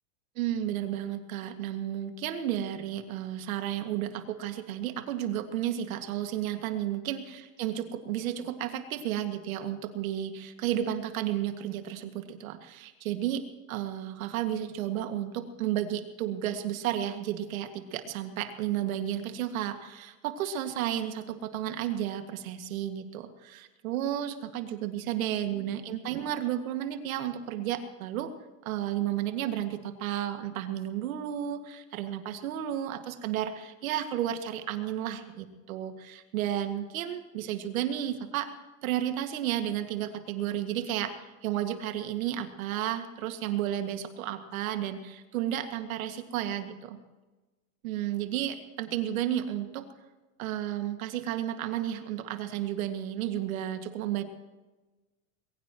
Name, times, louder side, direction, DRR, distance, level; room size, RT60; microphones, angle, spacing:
voice 1, 0.4-28.3 28.7-38.5 38.8-41.1 41.4-47.0 47.8-49.9 50.4-54.2, right 11 dB, 80° right, 7 dB, 2.1 m, -32 dB
21.5 x 17.5 x 3.0 m, 1.2 s
supercardioid pair, 165°, 41 cm